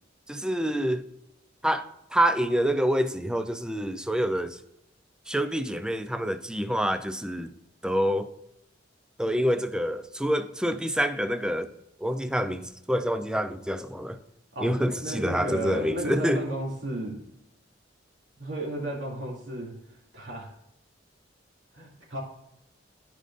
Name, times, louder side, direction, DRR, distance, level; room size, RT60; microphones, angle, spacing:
voice 1, 0.3-1.1 1.6-4.6 5.3-7.5 7.8-8.3 9.2-11.7 12.0-14.2 14.6-16.4, equal, 5° right, 0.5 m, -27 dB
voice 2, 15.0-17.2 18.4-19.7 20.1-20.5 21.7-22.2, right 1 dB, 70° right, 2.5 m, -33 dB
13.5 x 5.3 x 2.5 m
head